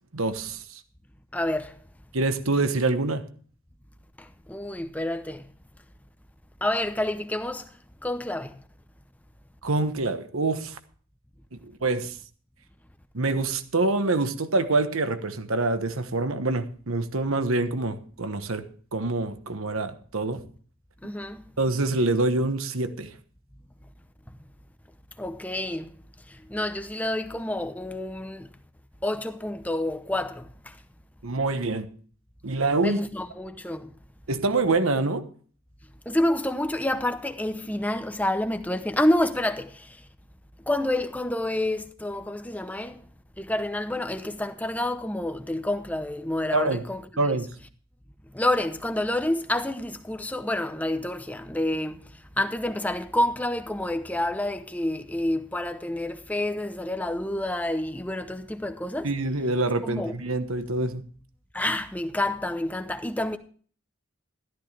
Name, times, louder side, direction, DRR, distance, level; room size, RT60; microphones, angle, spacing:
voice 1, 0.1-0.6 2.1-3.2 9.6-10.8 11.6-12.1 13.1-18.7 18.9-20.4 21.6-23.1 31.2-31.9 32.4-33.0 34.3-35.2 46.5-46.8 47.2-47.5 59.0-61.0, right 2 dB, 85° right, 1.2 m, -26 dB
voice 2, 1.3-1.8 4.5-5.4 6.6-7.7 8.0-8.6 21.0-21.4 25.2-25.9 26.5-28.5 29.0-30.7 32.8-33.9 36.1-39.9 40.7-43.0 43.4-47.0 48.3-52.0 52.4-59.1 59.8-60.1 61.5-63.4, left 1 dB, 5° left, 0.8 m, -28 dB
13.5 x 13.0 x 3.4 m
head